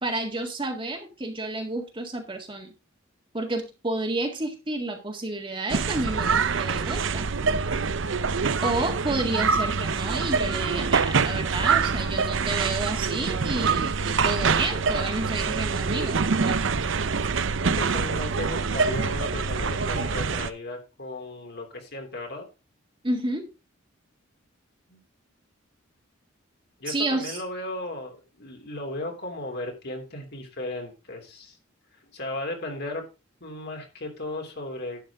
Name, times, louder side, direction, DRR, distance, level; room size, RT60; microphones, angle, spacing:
voice 1, 0.0-2.7 3.3-7.3 8.6-16.6 23.0-23.5 26.9-27.4, right 2 dB, 25° right, 3 dB, 1.8 m, -30 dB
sound 1, 5.7-20.5, right 5 dB, 65° right, 0.7 m, -25 dB
voice 2, 17.6-22.4 24.9-25.0 26.8-31.6 32.1-33.0 33.4-35.0, left 1 dB, 55° left, 2 dB, 3.2 m, -35 dB
11.5 x 8.1 x 3.7 m, 0.28 s
head